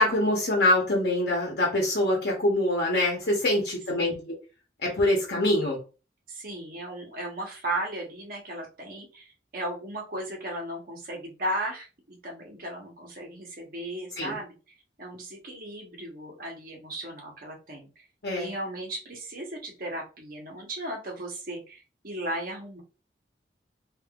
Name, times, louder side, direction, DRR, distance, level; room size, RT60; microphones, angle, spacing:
voice 1, 0.0-4.4 4.8-5.8 14.2-14.4 18.2-18.5, left 1 dB, 60° left, -2 dB, 0.9 m, -24 dB
voice 2, 4.0-4.3 6.3-14.5 15.0-18.0 18.3-22.8, right 1 dB, 55° right, 0 dB, 1.1 m, -36 dB
3.5 x 2.6 x 2.4 m, 0.32 s
head